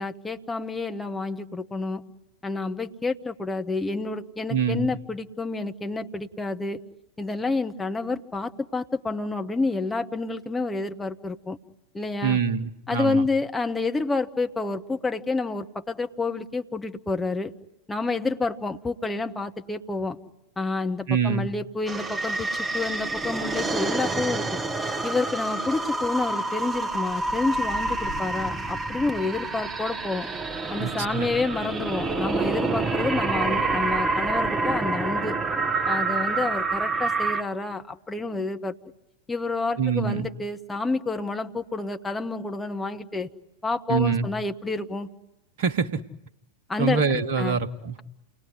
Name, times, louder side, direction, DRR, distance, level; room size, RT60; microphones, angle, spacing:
voice 1, 0.0-2.0 2.4-6.8 7.2-11.6 11.9-12.4 12.9-17.5 17.9-20.2 20.6-22.5 22.7-24.6 25.0-30.3 30.7-35.4 35.9-38.7 39.3-43.3 43.6-45.1 46.7-47.0 47.4-47.6, left 3 dB, 10° left, 6 dB, 1.2 m, -29 dB
voice 2, 4.5-4.9 12.2-13.3 21.1-21.5 30.8-31.3 39.8-40.3 43.9-44.3 45.6-46.0 46.8-48.0, right 6 dB, 50° right, 12 dB, 1.3 m, -25 dB
sound 1, 21.9-37.4, right 3 dB, 15° right, 1.2 m, -27 dB
29.5 x 20.0 x 9.8 m, 0.90 s
figure-of-eight pair, 90°, 0 cm